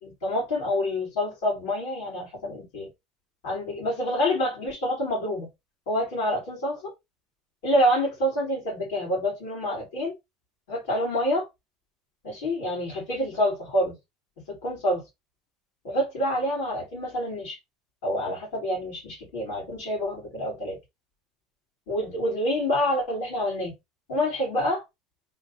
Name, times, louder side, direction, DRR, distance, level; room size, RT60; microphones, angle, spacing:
voice 1, 0.0-2.9 3.4-5.5 5.9-6.9 7.6-10.1 10.7-11.5 12.2-14.0 14.6-15.0 15.8-17.6 18.0-20.8 21.9-23.7 24.1-24.8, equal, 75° left, 3.1 m, -27 dB
4.3 x 2.8 x 4.1 m
cardioid pair, 150°, 0 cm